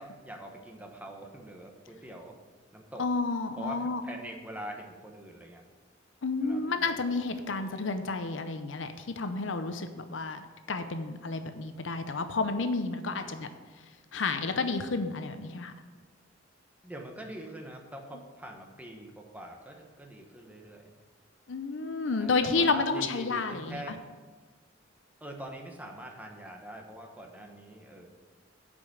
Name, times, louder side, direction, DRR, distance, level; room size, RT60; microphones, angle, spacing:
voice 1, 0.0-2.4 2.7-3.0 3.6-5.6 6.4-7.2 7.5-7.9 13.0-13.4 16.8-20.8 22.2-24.0 25.2-28.1, right 1 dB, 10° right, 2 dB, 1.1 m, -44 dB
voice 2, 3.0-4.0 6.2-8.9 9.2-13.5 14.1-15.7 21.5-23.8, left 4 dB, 75° left, 9 dB, 0.7 m, -30 dB
8.1 x 5.3 x 6.9 m, 1.4 s
head